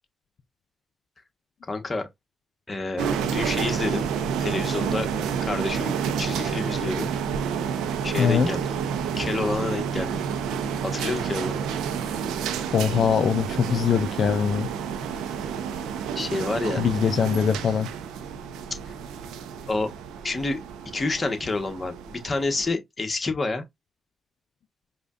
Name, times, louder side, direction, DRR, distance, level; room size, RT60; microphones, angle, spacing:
voice 1, 1.7-2.1 2.7-4.1 4.4-5.1 5.4-7.1 8.0-8.6 9.2-10.2 10.8-11.6 15.2-15.4 16.1-16.9 18.7-18.9 19.7-19.9 20.2-20.6 20.9-23.6, left 3 dB, 35° left, 1.2 m, -29 dB
sound 1, 3.0-22.7, right 7 dB, 90° right, 0.5 m, -29 dB
voice 2, 8.2-8.5 12.7-14.7 16.8-17.9, left 7 dB, 65° left, 0.4 m, -22 dB
4.9 x 2.3 x 2.5 m
supercardioid pair, 55°, 0 cm